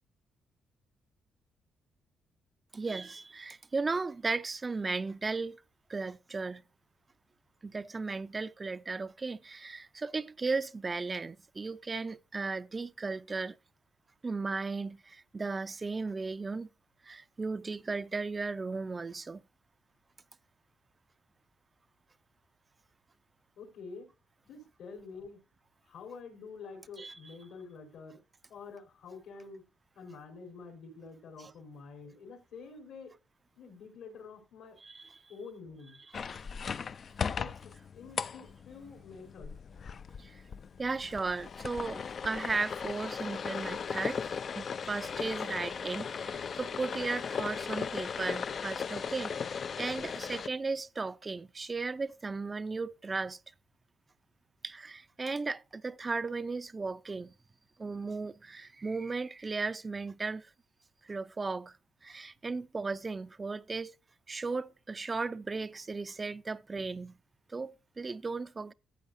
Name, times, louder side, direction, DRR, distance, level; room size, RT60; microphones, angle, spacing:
voice 1, 2.7-5.6 5.9-6.6 7.6-13.6 14.2-16.7 17.0-19.4 27.0-27.2 34.8-35.2 40.2-40.4 40.8-44.3 44.5-53.4 54.6-57.3 57.8-60.5 61.0-61.8 62.0-63.9 64.3-67.1 67.5-68.7, right 4 dB, 30° right, 0.5 m, -36 dB
voice 2, 23.6-24.1 24.4-25.4 25.9-28.2 28.5-29.6 29.9-33.1 33.6-34.8 35.3-36.0 37.3-39.5, left 4 dB, 75° left, 4.4 m, -48 dB
sound 1, 36.1-50.5, left 6 dB, 50° left, 0.5 m, -37 dB
14.0 x 8.0 x 2.6 m
cardioid pair, 90°, 0 cm